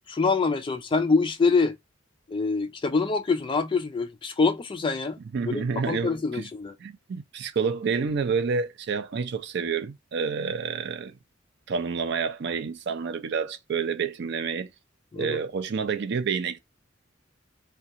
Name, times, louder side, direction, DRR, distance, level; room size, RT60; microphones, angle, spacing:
voice 1, 0.1-1.7 2.3-5.2 5.5-6.7 15.1-15.4, left 4 dB, 25° left, 0.3 m, -25 dB
voice 2, 5.3-6.5 6.8-11.1 11.7-14.7 15.2-16.6, right 5 dB, 55° right, 0.4 m, -29 dB
2.4 x 2.2 x 2.8 m
head